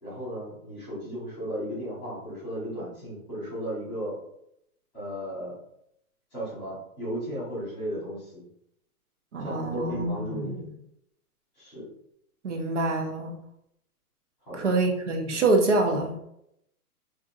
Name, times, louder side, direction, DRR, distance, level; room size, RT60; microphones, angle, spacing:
voice 1, 0.0-4.2 4.9-5.6 6.3-8.4 9.4-10.7 11.5-11.9 14.4-14.7, equal, ahead, -10 dB, 1.3 m, -35 dB
voice 2, 9.3-10.7 12.4-13.4 14.5-16.2, right 2 dB, 50° right, 2 dB, 0.8 m, -26 dB
4.4 x 2.6 x 2.6 m, 0.77 s
hypercardioid pair, 175°, 46 cm